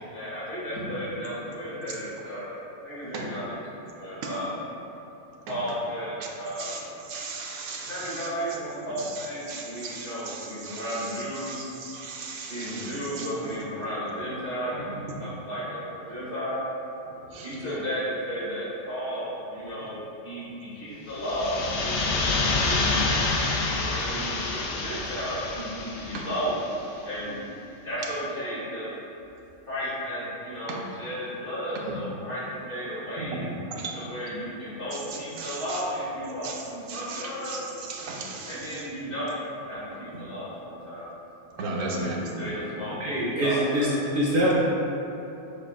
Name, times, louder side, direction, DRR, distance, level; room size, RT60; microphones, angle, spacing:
voice 1, 0.1-2.6 2.8-3.6 3.9-4.5 5.5-6.8 7.9-11.6 12.5-16.6 17.4-23.1 23.8-26.7 27.0-27.4 27.8-28.9 29.7-33.4 33.9-37.6 38.5-41.1 41.8-43.0 43.4-44.1, equal, 45° left, -10 dB, 1.3 m, -34 dB
voice 2, 6.6-8.3 9.0-13.3 14.7-15.2 17.1-17.7 19.1-19.2 19.8-19.9 20.5-20.6 20.9-21.0 26.1-26.2 30.7-30.8 31.9-32.0 33.2-34.0 34.9-35.8 36.4-36.6 36.9-38.9 40.1-40.3 41.5-42.5 42.9-43.0, right 3 dB, 90° right, -1 dB, 1.0 m, -37 dB
sound 1, 21.1-26.8, left 3 dB, 70° left, 0.9 m, -28 dB
voice 3, 43.0-43.9 44.1-44.6, equal, 55° right, -8 dB, 0.7 m, -23 dB
6.6 x 2.4 x 2.4 m, 3.0 s
omnidirectional pair, 1.3 m